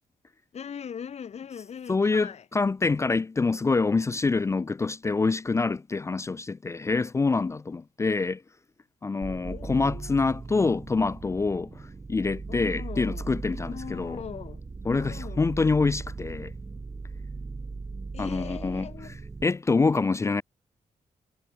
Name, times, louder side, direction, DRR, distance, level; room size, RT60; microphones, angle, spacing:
voice 1, 0.5-2.5 9.4-10.1 12.5-13.3 13.7-14.6 14.9-15.5 18.1-19.2, left 7 dB, 55° left, 1.9 m, -40 dB
voice 2, 1.9-8.4 9.0-11.7 12.1-14.2 14.9-16.5 18.2-18.9 19.4-20.4, left 4 dB, 20° left, 0.4 m, -26 dB
sound 1, 9.2-19.5, right 4 dB, 25° right, 1.2 m, -38 dB
cardioid pair, 115°, 13 cm